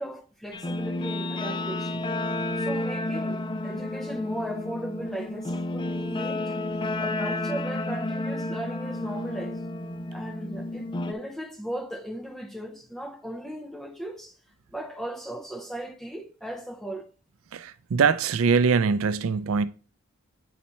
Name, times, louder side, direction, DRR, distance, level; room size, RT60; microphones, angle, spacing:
voice 1, 0.0-2.0 2.6-6.4 7.0-9.6 10.1-14.3 14.7-17.1, right 1 dB, ahead, 0.8 m, -37 dB
Guitar, 0.5-11.1, left 2 dB, 20° left, 0.4 m, -31 dB
voice 2, 17.5-19.7, right 5 dB, 70° right, 0.4 m, -23 dB
8.3 x 4.2 x 4.3 m
head